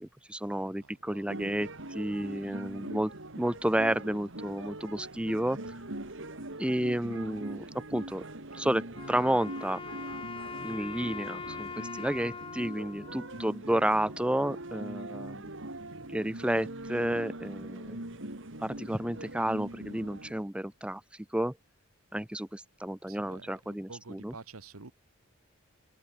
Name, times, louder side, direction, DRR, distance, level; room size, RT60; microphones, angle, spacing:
voice 1, 0.0-5.8 6.6-8.2 8.5-9.8 10.6-15.5 16.1-18.0 18.6-21.0 21.3-21.5 22.1-24.3, right 1 dB, 5° right, 0.5 m, -31 dB
voice 2, 0.7-1.5 15.6-16.1 23.1-24.9, right 3 dB, 75° right, 1.5 m, -50 dB
sound 1, 1.3-20.3, right 1 dB, 60° right, 3.3 m, -42 dB
Wind instrument woodwind instrument, 8.9-14.1, left 5 dB, 25° left, 0.7 m, -42 dB
open air
head